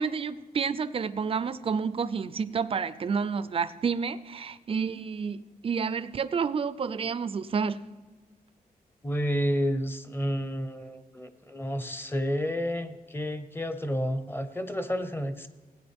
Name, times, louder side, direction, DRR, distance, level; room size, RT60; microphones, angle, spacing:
voice 1, 0.0-5.4 5.6-7.8, right 6 dB, 35° right, 15 dB, 0.4 m, -29 dB
voice 2, 9.0-15.5, equal, 15° left, 11 dB, 0.7 m, -30 dB
16.5 x 8.9 x 3.5 m, 1.3 s
wide cardioid pair, 130°, 16 cm